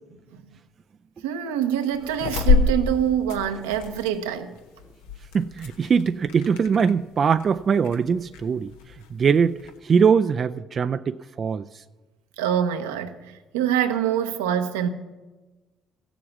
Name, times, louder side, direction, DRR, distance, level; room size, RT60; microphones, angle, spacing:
voice 1, 1.2-4.6 12.4-14.9, right 9 dB, 85° right, 0.8 m, -25 dB
sound 1, 1.9-9.8, left 4 dB, 80° left, 1.0 m, -28 dB
voice 2, 5.3-8.7 9.1-9.6 9.8-11.6, right 6 dB, 45° right, 0.3 m, -21 dB
15.5 x 7.1 x 7.2 m
hypercardioid pair, 55°, 0 cm